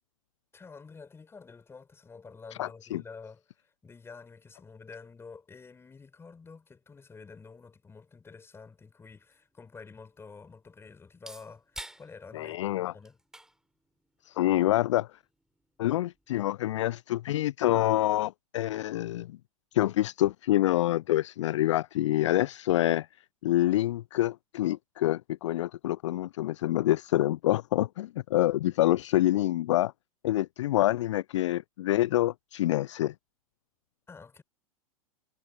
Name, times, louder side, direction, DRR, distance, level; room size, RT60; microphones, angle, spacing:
voice 1, 0.5-13.2 34.1-34.4, left 4 dB, 15° left, 4.9 m, -49 dB
voice 2, 2.6-3.0 12.3-12.9 14.3-15.1 15.8-19.4 19.7-23.1 23.4-29.9 30.2-33.1, left 15 dB, 55° left, 0.4 m, -26 dB
sound 1, 8.7-16.7, right 1 dB, 5° right, 7.3 m, -53 dB
figure-of-eight pair, 95°, 19 cm